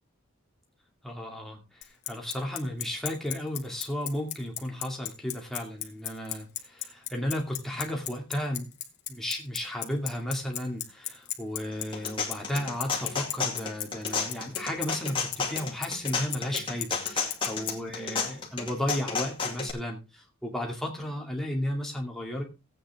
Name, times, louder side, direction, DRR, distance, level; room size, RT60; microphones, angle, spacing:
voice 1, 1.0-8.7 9.1-22.4, left 1 dB, ahead, 0 dB, 2.4 m, -34 dB
Bicycle, 1.8-17.7, left 13 dB, 50° left, 1.7 m, -33 dB
sound 1, 11.7-19.7, left 5 dB, 25° left, 2.3 m, -32 dB
15.5 x 8.7 x 3.6 m, 0.28 s
head